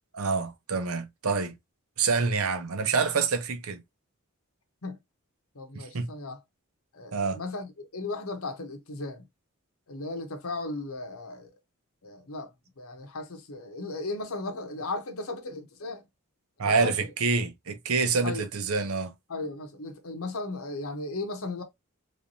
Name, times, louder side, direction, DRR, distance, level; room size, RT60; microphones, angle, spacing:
voice 1, 0.1-1.6 2.0-3.8 5.7-6.1 7.1-7.4 16.6-19.1, right 4 dB, 75° right, 0.8 m, -27 dB
voice 2, 5.5-6.4 6.9-9.3 9.9-11.5 12.0-12.5 12.8-16.0 16.6-16.9 18.2-18.5 19.3-21.6, left 2 dB, 75° left, 1.0 m, -36 dB
3.4 x 3.2 x 2.6 m
head